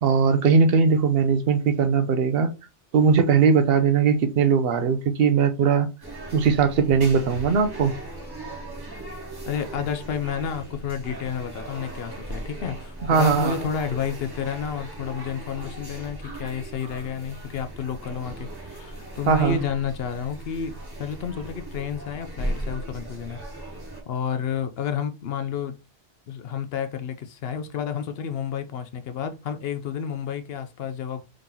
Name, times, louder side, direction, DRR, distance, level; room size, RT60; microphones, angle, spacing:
voice 1, 0.0-2.5 2.9-5.9 6.3-7.9 13.1-13.5 19.3-19.6, right 5 dB, 60° right, 0.8 m, -19 dB
sound 1, 6.0-24.0, right 1 dB, 20° right, 1.1 m, -37 dB
voice 2, 9.5-20.7 21.0-23.4 24.1-25.8 26.3-31.2, left 8 dB, 65° left, 0.7 m, -30 dB
3.7 x 2.8 x 3.7 m
omnidirectional pair, 1.2 m